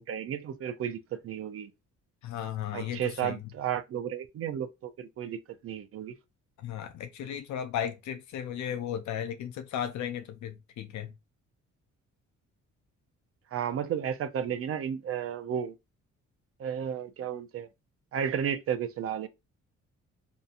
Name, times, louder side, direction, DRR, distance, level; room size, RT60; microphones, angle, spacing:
voice 1, 0.0-1.7 2.7-6.1 13.5-15.7 16.6-17.7 18.1-19.3, right 8 dB, 50° right, 0.5 m, -33 dB
voice 2, 2.2-3.4 6.6-11.1, left 9 dB, 70° left, 0.5 m, -35 dB
2.7 x 2.6 x 2.4 m
cardioid pair, 90°, 30 cm